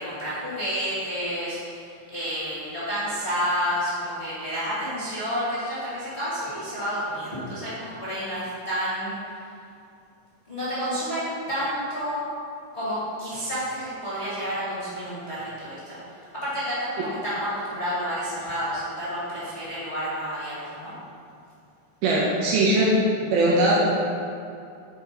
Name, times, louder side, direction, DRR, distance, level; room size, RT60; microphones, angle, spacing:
voice 1, 0.0-9.2 10.5-12.2 12.7-20.9, equal, 25° left, -12 dB, 1.7 m, -30 dB
voice 2, 22.0-23.0 23.3-24.0, right 1 dB, 80° right, -5 dB, 2.8 m, -20 dB
10.0 x 5.0 x 5.1 m, 2.5 s
omnidirectional pair, 4.4 m